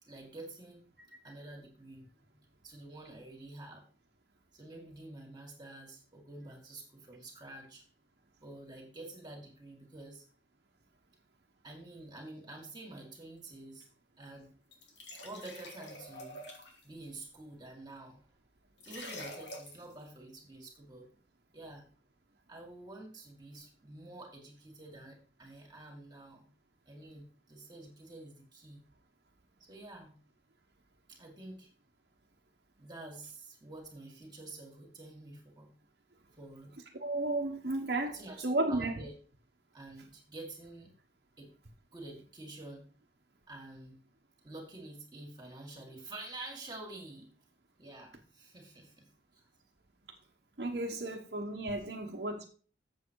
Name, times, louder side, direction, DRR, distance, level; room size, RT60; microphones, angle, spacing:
voice 1, 0.0-0.8 1.2-2.1 2.6-3.8 4.5-7.8 8.4-10.2 11.6-13.9 14.2-14.5 15.1-16.4 16.8-18.3 18.8-21.1 21.5-21.8 22.5-26.5 26.8-28.8 29.6-30.1 31.1-31.7 32.8-35.7 36.3-36.7 38.1-39.1 39.7-40.9 41.4-41.5 41.9-42.9 43.5-44.0 44.4-47.3 47.8-49.5 51.0-51.1, right 2 dB, 25° right, 2.3 m, -48 dB
sound 1, 14.7-16.8 18.8-19.9, left 1 dB, 80° left, 2.7 m, -46 dB
voice 2, 37.0-38.9 50.6-52.5, right 2 dB, 60° right, 1.2 m, -33 dB
7.7 x 7.6 x 4.7 m
head